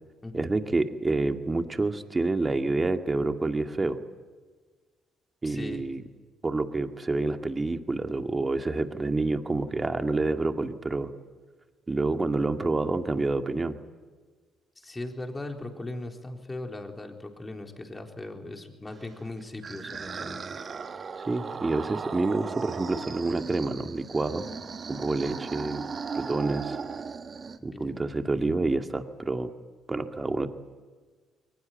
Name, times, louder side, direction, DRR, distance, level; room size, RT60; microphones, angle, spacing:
voice 1, 0.3-4.0 5.4-6.0 6.4-11.1 11.9-13.8 21.3-24.5 24.9-25.8 26.1-26.8 27.6-29.5 29.9-30.5, right 3 dB, 25° right, 6 dB, 2.1 m, -28 dB
voice 2, 5.4-5.8 14.8-20.4 27.6-28.0, left 2 dB, 20° left, 2 dB, 4.1 m, -39 dB
sound 1, 19.1-27.6, right 5 dB, 45° right, 1.4 m, -37 dB
22.5 x 19.5 x 9.2 m, 1.4 s
hypercardioid pair, 50°, 0 cm